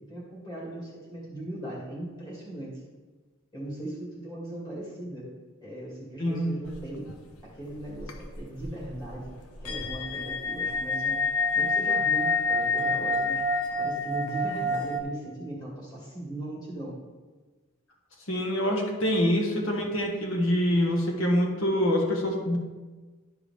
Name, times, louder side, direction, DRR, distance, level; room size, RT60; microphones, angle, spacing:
voice 1, 0.0-2.7 3.5-5.3 5.6-7.1 7.4-9.3 9.6-11.2 11.5-13.4 13.8-16.9, right 1 dB, 20° left, -5 dB, 2.4 m, -38 dB
sound 1, 6.7-7.1 7.4-7.5 7.8-15.0, left 3 dB, 90° left, 0.9 m, -28 dB
voice 2, 18.3-22.6, equal, 65° left, 0 dB, 1.4 m, -25 dB
12.0 x 4.7 x 3.4 m, 1.3 s
head